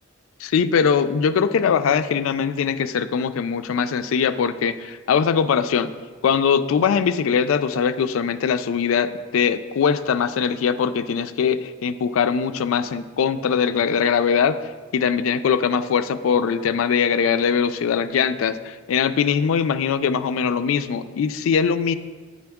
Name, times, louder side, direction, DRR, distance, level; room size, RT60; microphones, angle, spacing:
voice 1, 0.4-5.9 6.2-14.6 14.9-21.9, left 6 dB, 85° left, 11 dB, 0.3 m, -21 dB
7.8 x 5.1 x 3.5 m, 1.4 s
head